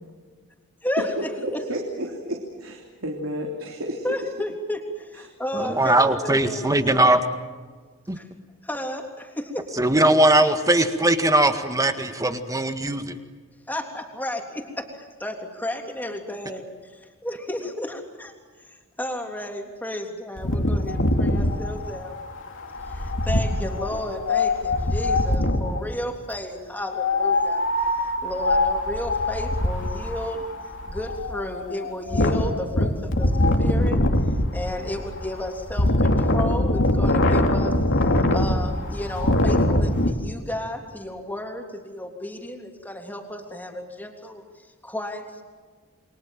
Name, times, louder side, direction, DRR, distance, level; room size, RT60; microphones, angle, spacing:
voice 1, 0.8-1.6 4.0-7.2 8.1-8.3 8.6-9.9 13.7-14.9 15.2-18.3 18.6-22.2 22.9-27.6 27.9-30.5 30.8-38.0 38.3-45.4, left 1 dB, 10° left, 3 dB, 3.4 m, -33 dB
voice 2, 1.4-4.0, equal, 70° right, 1 dB, 3.3 m, -31 dB
voice 3, 5.5-7.2 8.1-8.2 9.8-13.2, right 1 dB, 15° right, 8 dB, 1.8 m, -20 dB
Wind, 20.4-25.8 26.8-40.1, left 1 dB, 60° left, 2.7 m, -23 dB
29.0 x 23.5 x 7.6 m, 1.5 s
head